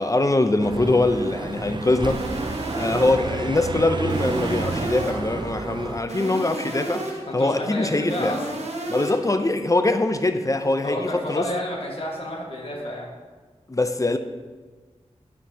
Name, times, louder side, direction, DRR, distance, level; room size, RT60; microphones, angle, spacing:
voice 1, 0.0-2.2 2.8-8.4 8.9-11.4 13.7-14.2, left 2 dB, 25° left, 8 dB, 0.5 m, -23 dB
sound 1, 0.6-6.0, right 3 dB, 40° right, 0.4 m, -30 dB
sound 2, 2.1-3.4 4.1-5.4 6.1-7.4 8.1-9.4, right 2 dB, 60° right, 1.0 m, -32 dB
voice 2, 7.3-8.4 10.8-13.1, left 1 dB, 50° left, -4 dB, 1.5 m, -30 dB
12.0 x 4.5 x 2.8 m, 1.4 s
wide cardioid pair, 50°, 12 cm